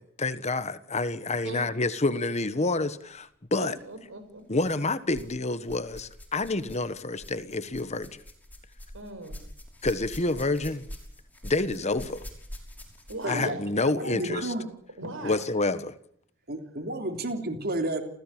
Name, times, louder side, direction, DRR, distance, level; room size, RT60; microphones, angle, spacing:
voice 1, 0.0-3.7 4.5-8.2 9.8-10.8 11.4-12.2 13.3-14.5 15.2-15.9, left 2 dB, 35° left, 1.3 m, -28 dB
voice 2, 3.6-4.6 8.9-9.4 13.1-13.6 15.0-15.4, right 2 dB, 70° right, 6.4 m, -39 dB
sound 1, 3.7-3.9 4.6-5.4 5.6-13.4 14.4-14.5 15.2-15.3, equal, 10° left, 6.1 m, -45 dB
voice 3, 13.2-14.7 16.5-18.0, right 1 dB, 50° right, 3.3 m, -32 dB
29.5 x 16.5 x 8.7 m
head